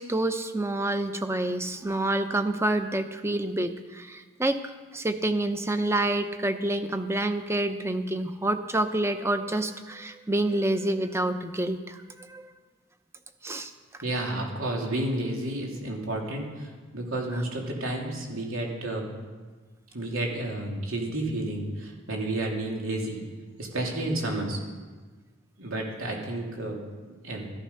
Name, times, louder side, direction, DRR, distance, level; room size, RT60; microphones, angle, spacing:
voice 1, 0.0-12.4 13.4-13.7, right 1 dB, 15° right, 9 dB, 0.7 m, -28 dB
voice 2, 14.0-19.1 19.9-23.2 23.6-24.6 25.6-27.5, right 1 dB, 85° right, 0 dB, 3.0 m, -31 dB
14.0 x 12.0 x 5.6 m, 1.4 s
head